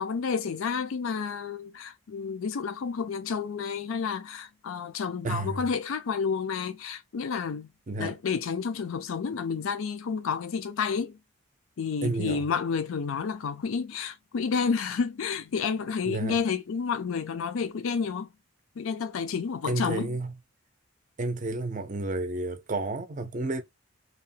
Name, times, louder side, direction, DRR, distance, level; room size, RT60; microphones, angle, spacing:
voice 1, 0.0-7.7 8.0-11.2 11.8-18.3 18.8-20.2, left 5 dB, 75° left, 0.4 m, -30 dB
voice 2, 5.2-5.6 7.9-8.2 12.0-12.4 16.0-16.4 19.6-20.3 21.2-23.6, right 2 dB, 35° right, 0.4 m, -31 dB
2.9 x 2.1 x 2.7 m
head